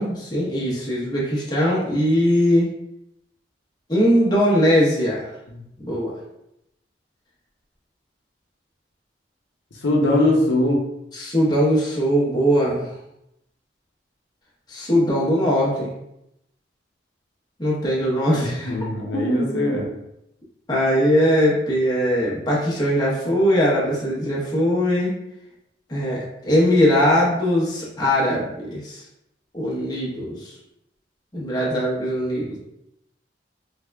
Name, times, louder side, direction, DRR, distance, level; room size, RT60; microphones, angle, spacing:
voice 1, 0.0-2.7 3.9-5.3 5.8-6.1 11.1-12.9 14.7-15.9 17.6-18.7 19.1-19.7 20.7-25.1 25.9-29.0 29.5-30.5 31.3-32.6, equal, 20° left, -6 dB, 0.9 m, -20 dB
voice 2, 9.7-10.8 18.3-19.9, left 1 dB, 80° left, -1 dB, 0.7 m, -21 dB
3.5 x 3.5 x 2.2 m, 0.83 s
head